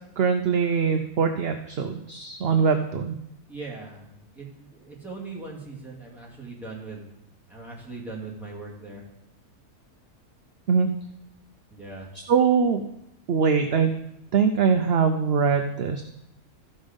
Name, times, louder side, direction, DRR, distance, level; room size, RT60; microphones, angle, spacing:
voice 1, 0.2-3.2 10.7-10.9 12.3-12.8 13.3-13.9 14.3-16.0, right 6 dB, 60° right, 7 dB, 0.7 m, -22 dB
voice 2, 3.5-7.1 7.5-9.0 11.7-12.1, right 3 dB, ahead, -4 dB, 2.4 m, -40 dB
14.0 x 5.5 x 5.2 m, 0.82 s
omnidirectional pair, 1.5 m